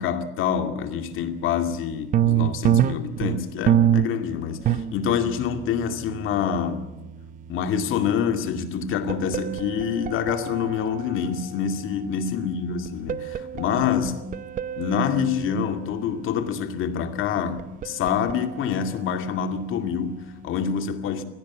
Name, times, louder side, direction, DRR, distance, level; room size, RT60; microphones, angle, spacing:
voice 1, 0.0-6.9 7.5-14.3 14.8-21.2, left 7 dB, 40° left, 2.3 m, -26 dB
sound 1, 1.7-1.8 2.1-11.7 12.9-15.6 17.3-18.6, right 10 dB, 25° right, 0.7 m, -27 dB
23.0 x 17.5 x 7.3 m
cardioid pair, 160°, 30 cm